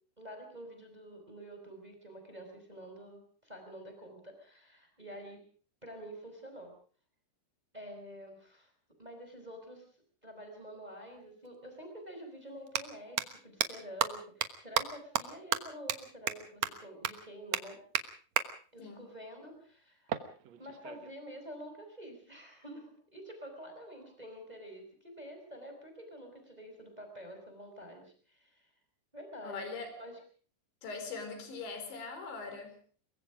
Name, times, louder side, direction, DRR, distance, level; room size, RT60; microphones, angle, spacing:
voice 1, 0.2-5.4 5.8-6.7 7.7-8.7 9.0-9.9 10.2-17.8 18.7-20.2 20.6-28.7 29.1-29.7 30.0-30.2, equal, 10° right, 6 dB, 4.6 m, -48 dB
sound 1, 11.4-11.5 12.6-12.8 13.2-13.3 13.6-13.7 14.0-14.1 14.4-14.5 14.7-14.8 15.1-15.2 15.5-15.6 15.9-16.0 16.3-16.4 16.6-16.7 17.0-17.1 17.5-17.6 17.9-18.0 18.4-18.5 20.1-21.1, right 10 dB, 75° right, 1.6 m, -31 dB
voice 2, 18.8-19.1 29.4-29.9 30.8-32.8, left 4 dB, 85° left, 7 dB, 6.6 m, -41 dB
23.0 x 22.5 x 5.0 m, 0.43 s
omnidirectional pair, 5.1 m